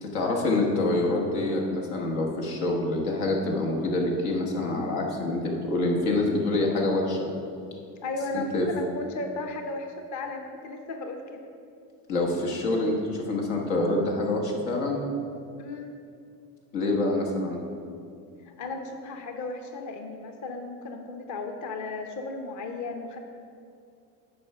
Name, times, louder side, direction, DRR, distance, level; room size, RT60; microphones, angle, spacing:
voice 1, 0.0-7.3 8.3-8.7 12.1-15.0 16.7-17.6, left 2 dB, 85° left, 0 dB, 1.5 m, -26 dB
voice 2, 8.0-11.4 15.6-15.9 18.4-23.2, left 3 dB, 40° left, 4 dB, 0.8 m, -35 dB
8.4 x 4.8 x 5.5 m, 2.4 s
supercardioid pair, 95°, 44 cm